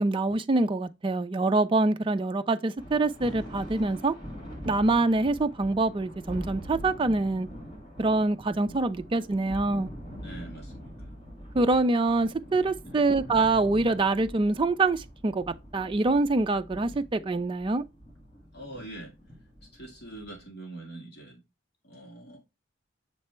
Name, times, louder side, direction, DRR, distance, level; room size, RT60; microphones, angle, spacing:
voice 1, 0.0-4.1 4.6-7.5 8.0-9.9 11.5-17.8, right 2 dB, 25° right, 0.3 m, -25 dB
Thunder, 2.8-20.5, equal, 25° left, 2.0 m, -44 dB
voice 2, 10.2-11.1 12.8-13.0 18.5-19.1 19.6-21.4 21.8-22.4, right 2 dB, 50° left, 1.7 m, -44 dB
6.6 x 3.3 x 4.3 m
head